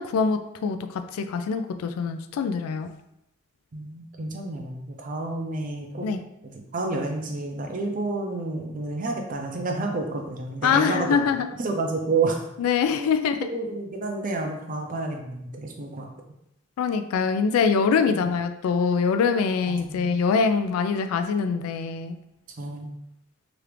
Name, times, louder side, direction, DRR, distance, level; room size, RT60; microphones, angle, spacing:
voice 1, 0.0-2.9 6.0-6.2 10.6-11.5 12.6-13.5 16.8-22.2, left 5 dB, 85° left, 9 dB, 0.3 m, -24 dB
voice 2, 3.7-6.1 6.4-12.4 13.0-13.1 13.4-16.1 18.1-18.3 19.7-20.2 22.6-22.9, right 3 dB, 40° right, 2 dB, 0.5 m, -30 dB
3.0 x 2.4 x 3.3 m, 0.83 s
head